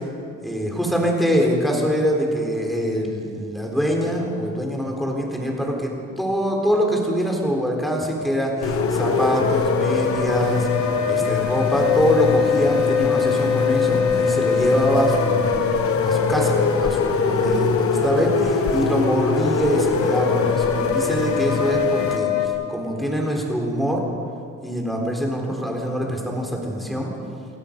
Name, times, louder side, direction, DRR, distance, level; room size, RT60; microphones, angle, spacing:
voice 1, 0.4-5.9 6.2-10.7 11.1-15.6 16.0-22.3 22.7-24.0 24.6-27.1, equal, ahead, 0 dB, 4.0 m, -24 dB
sound 1, 8.6-22.5, left 5 dB, 65° left, 2.3 m, -22 dB
sound 2, 8.6-22.2, left 6 dB, 45° left, 0.9 m, -28 dB
29.5 x 16.5 x 5.3 m, 2.5 s
cardioid pair, 145°, 31 cm